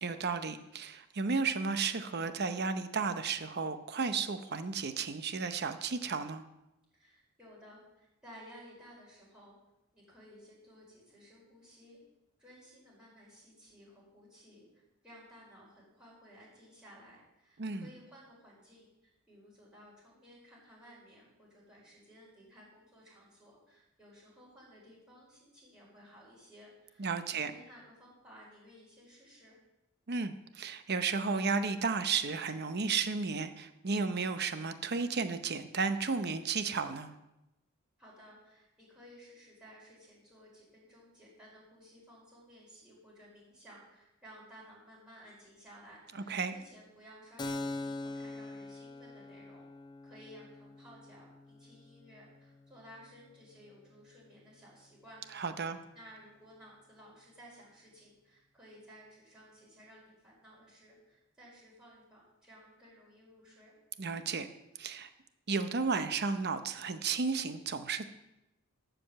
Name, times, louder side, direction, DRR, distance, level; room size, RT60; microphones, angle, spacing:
voice 1, 0.0-6.4 17.6-17.9 27.0-27.5 30.1-37.1 46.1-46.5 55.3-55.8 64.0-64.5 64.8-65.1 65.5-68.1, right 4 dB, 55° right, 10 dB, 0.8 m, -33 dB
voice 2, 6.9-9.5 9.9-12.0 12.4-29.6 38.0-49.6 50.0-55.2 55.6-63.7, equal, 5° right, -7 dB, 5.0 m, -56 dB
Keyboard (musical), 47.4-54.7, left 2 dB, 20° left, 0.5 m, -44 dB
12.0 x 5.1 x 7.5 m, 0.92 s
head